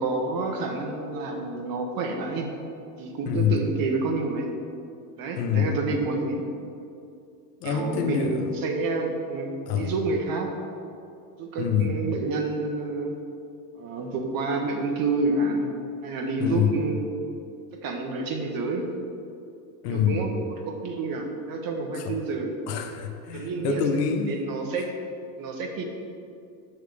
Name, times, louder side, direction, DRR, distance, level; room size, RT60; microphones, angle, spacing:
voice 1, 0.0-2.5 3.0-4.5 5.2-6.4 7.6-10.5 11.4-13.2 13.7-15.7 16.0-17.0 17.8-18.8 19.9-20.3 20.6-22.5 23.3-23.8 24.2-24.9 25.4-25.8, right 3 dB, 45° right, 3 dB, 1.3 m, -28 dB
voice 2, 3.3-3.6 5.4-5.8 7.6-8.5 9.7-9.9 11.6-11.9 16.4-16.8 19.8-20.3 21.9-22.2 22.7-24.4, left 8 dB, 85° left, 5 dB, 1.0 m, -26 dB
6.7 x 6.2 x 4.8 m, 2.5 s
hypercardioid pair, 95°, 47 cm